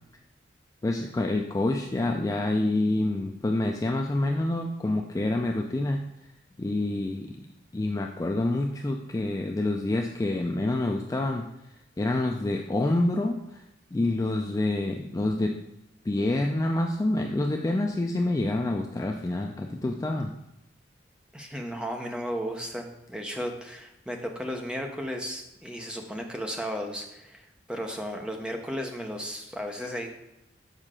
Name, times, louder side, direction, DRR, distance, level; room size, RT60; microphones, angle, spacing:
voice 1, 0.8-6.0 6.6-7.4 7.7-13.6 13.9-15.6 16.0-20.3, left 2 dB, 20° left, 2 dB, 0.3 m, -27 dB
voice 2, 21.3-30.1, equal, 5° right, 2 dB, 0.7 m, -34 dB
6.6 x 5.3 x 3.7 m, 0.88 s
head